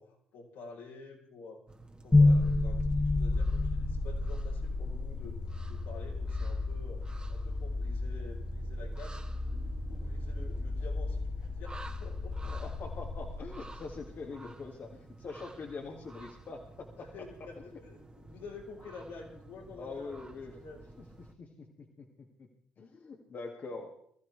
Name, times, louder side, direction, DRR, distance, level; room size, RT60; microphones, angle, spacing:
voice 1, 0.0-1.6 2.0-5.4 5.7-7.0 7.3-12.5 17.0-20.1 20.5-20.8, left 4 dB, 80° left, -3 dB, 4.3 m, -49 dB
sound 1, 1.7-21.3, right 2 dB, 20° right, 1.7 m, -52 dB
sound 2, 2.1-14.2, left 2 dB, 15° left, 0.8 m, -31 dB
voice 2, 12.4-17.1 17.6-17.7 19.8-20.5 21.2-22.1 22.4-22.5 22.8-23.9, left 4 dB, 50° left, 1 dB, 2.1 m, -44 dB
23.0 x 14.0 x 3.4 m, 0.67 s
hypercardioid pair, 50°, 4 cm